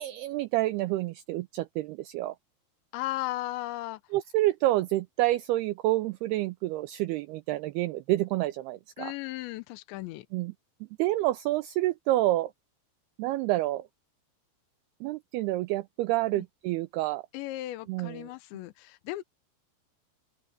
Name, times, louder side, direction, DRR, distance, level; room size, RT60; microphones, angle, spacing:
voice 1, 0.0-2.3 4.1-9.1 10.3-10.5 11.0-12.5 13.2-13.9 15.0-17.2 17.9-18.3, right 16 dB, 80° right, 2.4 m, -28 dB
voice 2, 2.9-4.0 9.0-10.3 16.3-16.4 17.3-19.2, left 16 dB, 85° left, 3.2 m, -36 dB
omnidirectional pair, 5.1 m